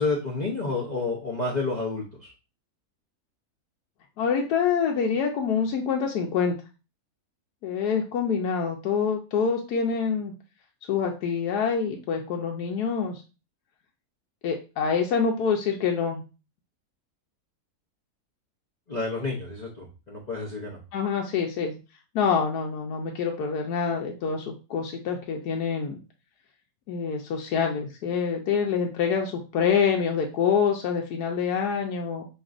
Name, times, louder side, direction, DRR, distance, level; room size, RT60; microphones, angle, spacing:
voice 1, 0.0-2.3 18.9-20.8, left 3 dB, 40° left, -4 dB, 0.7 m, -30 dB
voice 2, 4.2-6.5 7.6-10.3 10.9-13.2 14.4-16.2 20.9-21.8 22.1-26.0 26.9-32.2, left 6 dB, 85° left, 1 dB, 1.2 m, -26 dB
5.2 x 2.9 x 2.4 m, 0.31 s
omnidirectional pair, 1.7 m